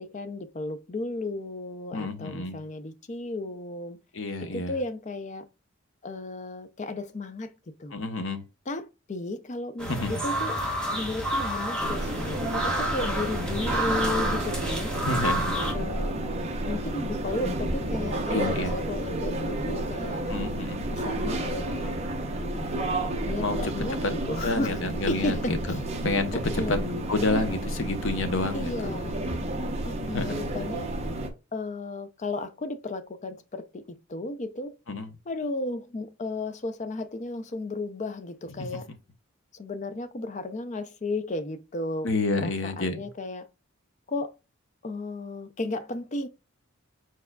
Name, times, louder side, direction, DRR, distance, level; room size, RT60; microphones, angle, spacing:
voice 1, 0.0-4.0 4.4-5.5 6.0-7.5 7.8-8.0 8.7-10.6 10.9-14.9 15.7-16.2 16.6-20.3 20.9-22.0 22.3-24.7 25.1-25.5 26.6-26.8 28.5-29.2 29.8-30.9 31.5-34.8 35.3-38.9 39.5-42.1 42.4-43.5 44.1-44.3 44.8-46.3, left 2 dB, 35° left, 0.4 m, -34 dB
voice 2, 1.9-2.6 4.1-4.8 7.9-8.4 9.9-10.1 15.0-15.6 18.3-18.8 20.3-20.9 23.4-23.7 24.0-24.1 24.4-26.8 27.1-28.7 30.0-30.4 34.9-35.1 42.0-43.1, left 2 dB, 65° left, 0.8 m, -29 dB
sound 1, 9.8-15.7, right 1 dB, 5° left, 1.1 m, -29 dB
sound 2, 11.8-31.3, right 1 dB, 30° right, 0.7 m, -31 dB
4.7 x 4.6 x 2.2 m
head